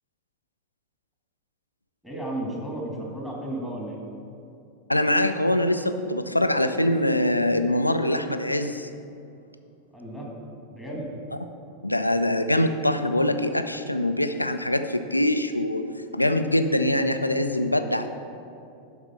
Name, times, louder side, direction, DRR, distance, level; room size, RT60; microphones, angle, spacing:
voice 1, 2.0-4.0 9.9-10.3 10.7-11.1, right 1 dB, 5° right, -2 dB, 1.9 m, -33 dB
voice 2, 4.9-8.9 11.8-15.8 16.1-18.1, left 1 dB, 85° left, 8 dB, 0.4 m, -23 dB
11.0 x 4.3 x 5.6 m, 2.6 s
figure-of-eight pair, 90°, 0 cm